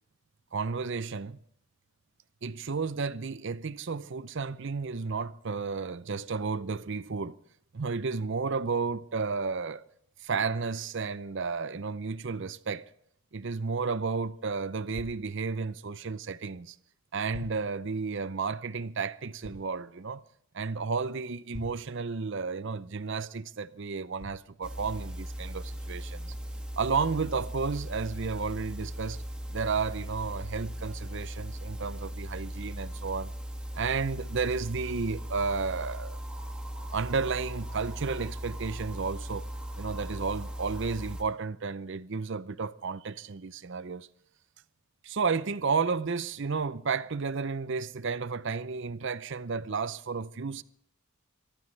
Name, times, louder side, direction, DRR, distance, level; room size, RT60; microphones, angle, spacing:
voice 1, 0.5-1.4 2.4-7.4 7.7-9.8 10.2-12.8 13.3-16.8 17.1-20.2 20.5-26.3 26.8-29.2 29.5-33.3 33.7-36.2 36.9-39.5 39.8-44.1 45.0-50.6, right 4 dB, 55° right, 0.6 m, -32 dB
sound 1, 14.9-15.1 16.5-16.6 17.3-17.6 19.4-19.7 21.5-21.9 24.1-24.4 25.5-25.6 26.3-26.5, equal, 45° left, 5.4 m, -44 dB
sound 2, 24.6-41.2, equal, 5° right, 1.6 m, -38 dB
24.5 x 13.5 x 3.3 m
head